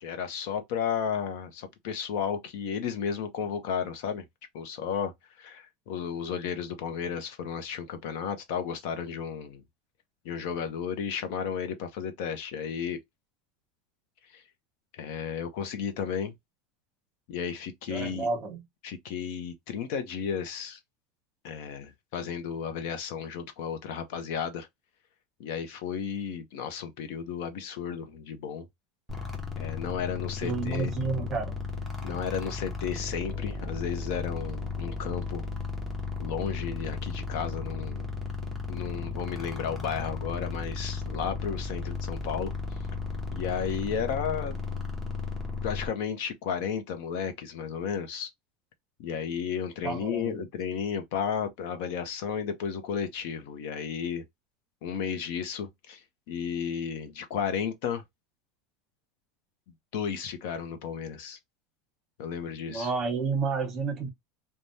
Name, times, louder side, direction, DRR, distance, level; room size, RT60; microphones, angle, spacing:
voice 1, 0.0-4.2 4.5-5.1 5.4-9.6 10.2-13.0 14.3-14.4 14.9-16.3 17.3-18.3 18.8-20.8 21.4-24.7 25.4-28.7 29.6-30.9 32.0-35.4 36.2-38.1 38.7-42.5 43.3-44.6 45.6-48.3 49.0-54.2 54.8-58.0 59.9-61.4 62.2-62.9, left 7 dB, 65° left, 0.7 m, -33 dB
voice 2, 17.9-18.6 30.4-31.5 49.8-50.4 62.7-64.1, right 4 dB, 25° right, 1.0 m, -30 dB
sound 1, 29.1-45.9, left 4 dB, 5° left, 0.8 m, -35 dB
3.3 x 2.2 x 2.6 m
supercardioid pair, 155°, 0 cm